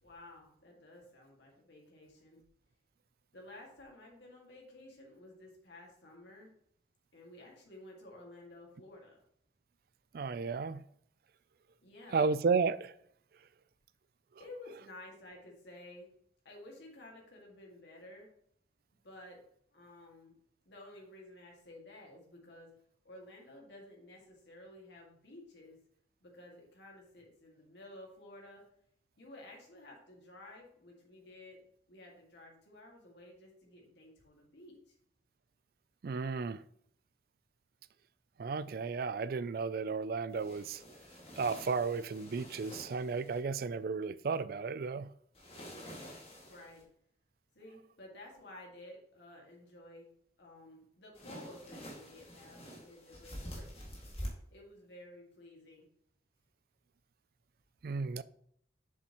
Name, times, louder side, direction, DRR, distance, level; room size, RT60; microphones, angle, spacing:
voice 1, 0.0-2.4 3.3-6.5 7.1-9.2 11.8-12.2 14.4-16.1 16.4-18.3 19.0-19.4 19.7-20.3 20.7-22.7 23.0-25.8 26.2-28.6 29.2-31.6 31.9-34.9 46.4-46.8 47.5-50.1 50.4-53.7 54.5-55.9, left 1 dB, 80° left, 2.1 m, -53 dB
voice 2, 10.1-10.8 12.1-12.9 36.0-36.6 38.4-40.8 41.4-45.1 57.8-58.2, right 4 dB, 55° right, 0.4 m, -33 dB
sound 1, 40.3-43.4 45.3-46.8 51.1-54.3, equal, 35° left, 2.1 m, -47 dB
7.3 x 7.1 x 3.0 m
head